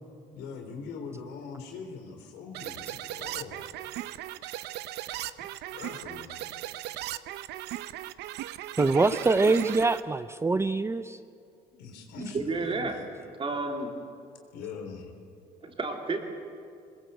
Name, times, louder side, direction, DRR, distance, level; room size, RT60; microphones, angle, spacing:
voice 1, 0.3-3.6 5.3-6.4 11.7-13.1 14.5-15.1, left 5 dB, 90° left, 4 dB, 3.6 m, -42 dB
sound 1, 2.5-10.0, right 14 dB, 80° right, 0.7 m, -37 dB
voice 2, 8.8-11.2, right 3 dB, 15° right, 12 dB, 0.5 m, -24 dB
voice 3, 12.2-13.0 13.4-13.9 15.6-16.2, right 3 dB, 30° right, 3 dB, 3.2 m, -31 dB
21.5 x 21.0 x 8.1 m, 2.4 s
cardioid pair, 110°, 17 cm